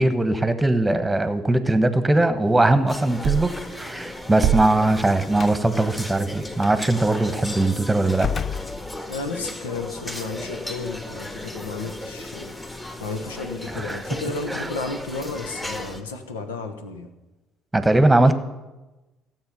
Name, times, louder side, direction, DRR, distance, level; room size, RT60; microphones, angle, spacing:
voice 1, 0.0-8.3 13.7-14.0 14.5-14.7 17.7-18.3, right 2 dB, 10° right, 10 dB, 1.2 m, -20 dB
sound 1, 2.9-16.0, left 1 dB, 20° left, 1.9 m, -35 dB
Punching Phone Book, 3.2-3.5 4.4-4.9, right 13 dB, 55° right, 0.5 m, -22 dB
Slam, 5.3-5.6 6.6-6.8 8.1-9.4, left 7 dB, 45° left, 0.4 m, -31 dB
voice 2, 9.1-12.6 13.0-17.1, left 3 dB, 80° left, 7 dB, 1.1 m, -32 dB
16.0 x 7.4 x 5.4 m, 1.1 s
figure-of-eight pair, 55°, 0 cm